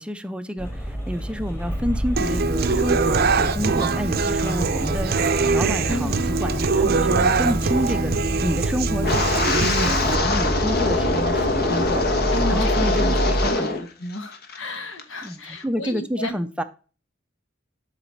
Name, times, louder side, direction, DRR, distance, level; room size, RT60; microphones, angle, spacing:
voice 1, 0.0-13.7 15.2-16.6, equal, 5° right, 0.5 m, -29 dB
sound 1, 0.6-13.5, equal, 15° left, 1.8 m, -27 dB
Human voice / Acoustic guitar, 2.2-10.1, right 4 dB, 55° right, 0.6 m, -23 dB
voice 2, 5.9-6.2 12.3-16.3, left 1 dB, 80° left, 1.3 m, -33 dB
Wind, 9.0-13.9 14.1-14.6 15.0-15.3, left 2 dB, 55° left, 1.2 m, -23 dB
12.0 x 4.0 x 4.5 m
head